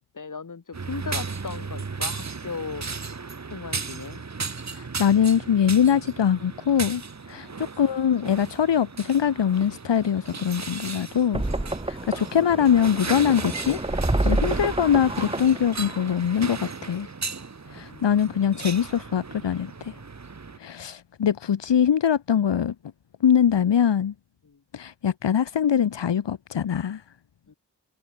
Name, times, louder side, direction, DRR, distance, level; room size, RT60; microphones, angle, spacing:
voice 1, 0.0-2.9 3.5-4.2 7.4-7.6 11.8-11.9 17.7-18.4 20.6-20.9 24.4-24.6 27.5-27.6, left 5 dB, 45° left, 5.9 m, -38 dB
sound 1, 0.7-20.6, right 4 dB, 40° right, 3.4 m, -36 dB
voice 2, 4.7-7.0 7.3-11.4 11.9-13.8 14.2-17.1 17.7-19.9 20.6-22.7 23.2-24.1 24.7-27.0, left 8 dB, 85° left, 3.0 m, -22 dB
sound 2, 11.3-16.3, right 2 dB, 15° right, 2.5 m, -28 dB
wide cardioid pair, 90°, 42 cm